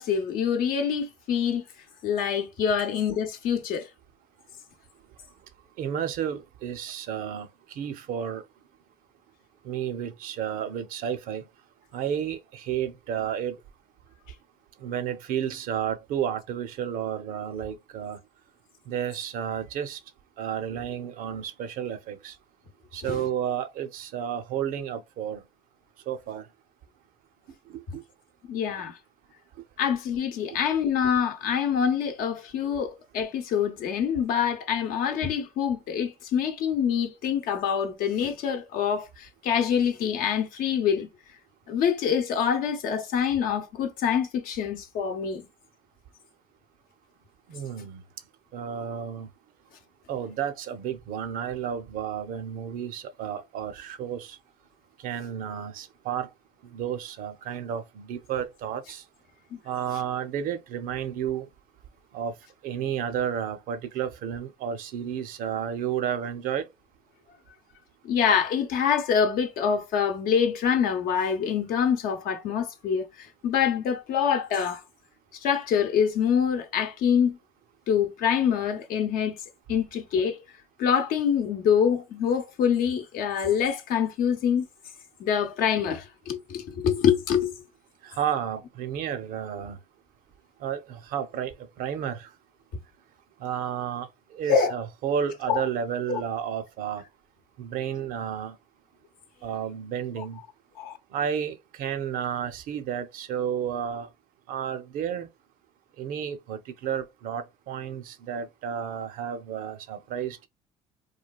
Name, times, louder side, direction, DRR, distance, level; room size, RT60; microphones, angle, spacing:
voice 1, 0.0-1.6 2.0-3.9 23.1-23.2 28.5-29.0 29.8-41.1 41.7-45.5 59.5-59.6 68.0-74.8 75.4-77.4 77.9-79.4 79.7-80.4 80.8-84.7 85.2-87.5 94.5-94.7 95.5-95.6 96.1-96.2 100.2-100.3 100.8-101.0, left 7 dB, 70° left, 0.7 m, -25 dB
voice 2, 5.8-7.5 7.8-8.4 9.6-11.4 11.9-13.6 14.8-18.2 18.9-20.0 20.4-22.3 22.9-25.4 26.1-26.4 27.7-28.0 47.5-48.0 48.5-49.3 50.1-54.4 55.0-56.3 56.6-59.0 59.7-61.5 62.1-62.3 62.6-66.7 88.0-89.8 90.6-92.3 93.4-94.1 94.3-97.0 97.6-98.6 99.4-100.4 101.1-104.1 104.5-105.3 106.0-110.5, right 9 dB, 65° right, 0.5 m, -31 dB
3.1 x 2.2 x 2.3 m
supercardioid pair, 70°, 15 cm